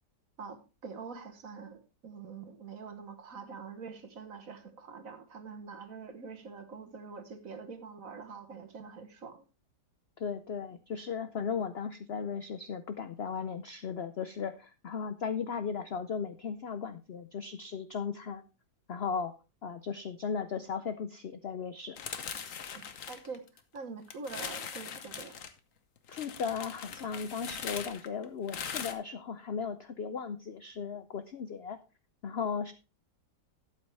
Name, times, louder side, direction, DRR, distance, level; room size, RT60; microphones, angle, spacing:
voice 1, 0.4-9.4 22.7-25.4, right 5 dB, 55° right, 8 dB, 1.6 m, -45 dB
voice 2, 10.2-18.4 18.9-19.3 19.6-22.0 26.1-31.8 32.2-32.7, left 6 dB, 75° left, 11 dB, 0.5 m, -36 dB
sound 1, 22.0-23.8 24.1-25.5 26.1-28.9, left 7 dB, 55° left, 1.3 m, -40 dB
12.0 x 8.7 x 3.3 m, 0.30 s
omnidirectional pair, 1.8 m